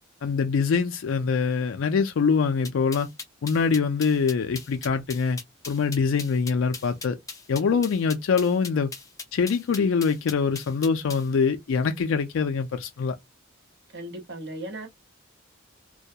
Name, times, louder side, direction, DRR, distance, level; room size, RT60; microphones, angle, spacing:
voice 1, 0.2-3.1 3.4-5.4 5.7-7.2 7.5-8.9 9.3-13.1, left 5 dB, 70° left, 0.4 m, -24 dB
sound 1, 2.6-11.3, left 4 dB, 15° left, 0.5 m, -39 dB
voice 2, 13.9-14.9, right 1 dB, 55° right, 0.9 m, -36 dB
2.3 x 2.1 x 2.7 m
head